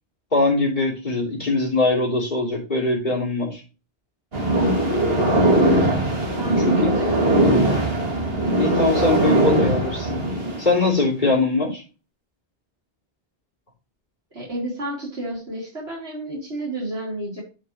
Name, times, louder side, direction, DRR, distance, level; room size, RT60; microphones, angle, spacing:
voice 1, 0.3-3.6 6.6-6.9 8.6-10.2 10.6-11.8, left 2 dB, 45° left, -3 dB, 3.5 m, -22 dB
sound 1, 4.3-10.7, right 1 dB, 70° right, 2.7 m, -20 dB
voice 2, 6.4-7.6 14.3-17.4, right 1 dB, 85° right, -4 dB, 4.3 m, -31 dB
11.5 x 5.7 x 3.1 m, 0.33 s
omnidirectional pair, 1.1 m